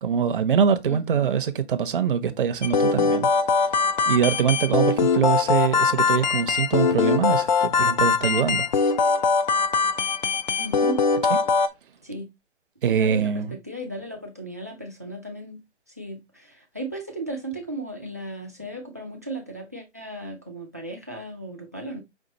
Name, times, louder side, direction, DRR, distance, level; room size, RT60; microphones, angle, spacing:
voice 1, 0.0-3.3 4.1-8.6 12.8-13.5, right 7 dB, 50° right, 0.6 m, -23 dB
voice 2, 0.9-1.4 10.6-11.0 12.0-12.3 12.9-15.6 16.0-22.0, right 1 dB, 15° right, 0.3 m, -36 dB
sound 1, 2.6-11.7, left 5 dB, 40° left, 0.5 m, -22 dB
5.3 x 2.5 x 3.8 m
hypercardioid pair, 155°, 35 cm